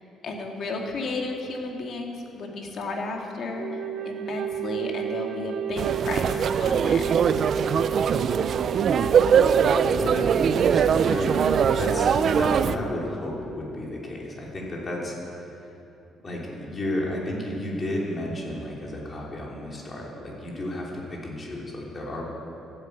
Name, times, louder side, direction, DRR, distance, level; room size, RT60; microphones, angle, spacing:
voice 1, 0.2-7.0, left 3 dB, 55° left, 1 dB, 2.2 m, -33 dB
Wind instrument woodwind instrument, 3.6-12.2, right 8 dB, 70° right, 0.9 m, -31 dB
sound 1, 5.8-12.8, right 7 dB, 50° right, 0.5 m, -22 dB
voice 2, 9.5-15.7 16.2-22.2, left 1 dB, 30° left, -3 dB, 3.3 m, -33 dB
15.0 x 9.0 x 8.1 m, 2.8 s
cardioid pair, 125°, 0 cm